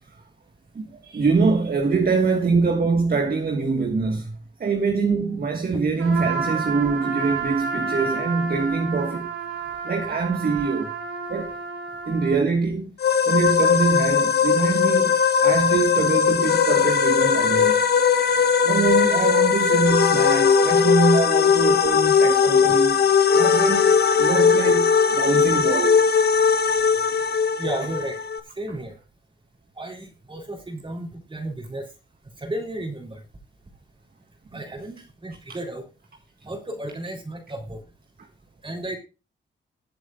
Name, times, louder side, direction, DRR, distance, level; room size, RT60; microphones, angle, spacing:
voice 1, 0.7-4.3 4.6-9.3 9.8-10.9 11.3-11.5 12.0-12.9 13.3-17.8 18.6-23.0 23.3-26.0 34.5-34.6 35.5-35.6 38.2-38.3, right 4 dB, 50° right, 1.7 m, -24 dB
Trumpet, 6.0-12.4, right 5 dB, 90° right, 6.1 m, -30 dB
sound 1, 13.0-28.4, left 6 dB, 55° left, 1.3 m, -19 dB
voice 2, 27.6-28.1 28.6-29.0 29.8-31.8 32.4-33.2 34.5-35.8 36.5-37.8 38.6-39.0, right 1 dB, 25° right, 3.5 m, -33 dB
21.0 x 7.8 x 2.4 m
wide cardioid pair, 115°, 20 cm